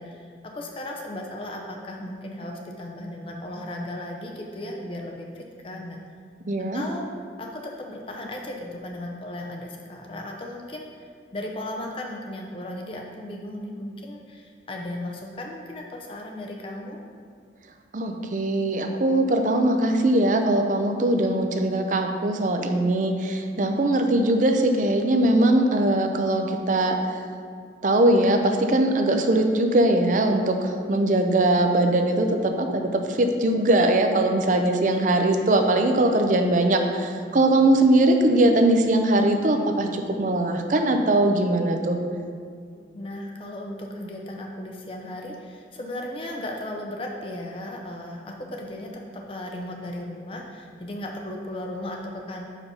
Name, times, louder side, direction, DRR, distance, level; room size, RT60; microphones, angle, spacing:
voice 1, 0.0-6.0 6.7-7.1 7.4-10.9 11.3-17.0 42.9-52.5, left 1 dB, 30° left, 1 dB, 0.5 m, -36 dB
voice 2, 6.5-6.8 17.9-27.1 27.8-42.0, right 1 dB, 45° right, 5 dB, 0.5 m, -21 dB
5.0 x 4.9 x 5.4 m, 2.2 s
head